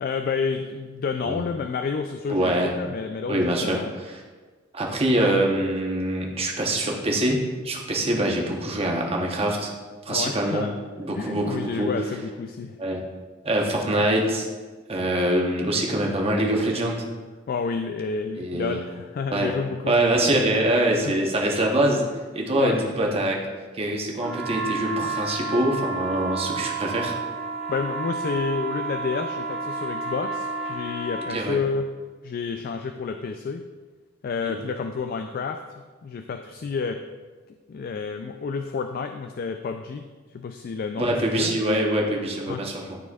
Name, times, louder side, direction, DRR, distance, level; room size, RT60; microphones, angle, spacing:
voice 1, 0.0-3.9 10.1-10.7 11.2-12.8 17.5-19.9 21.0-21.1 22.6-22.8 27.7-31.9 32.2-33.6 34.2-37.0 37.7-41.6 42.5-42.6, left 5 dB, 45° left, 6 dB, 0.3 m, -30 dB
voice 2, 2.3-2.7 3.3-3.8 4.7-9.7 10.0-10.7 11.0-11.9 12.8-13.0 13.4-14.5 14.9-17.1 18.4-18.8 19.3-19.5 19.9-23.4 23.7-27.1 31.3-31.6 34.4-34.6 41.0-43.0, right 1 dB, 30° right, 0 dB, 0.9 m, -24 dB
sound 1, 24.2-31.4, right 4 dB, ahead, 1.2 m, -31 dB
12.0 x 4.2 x 2.4 m, 1.4 s
head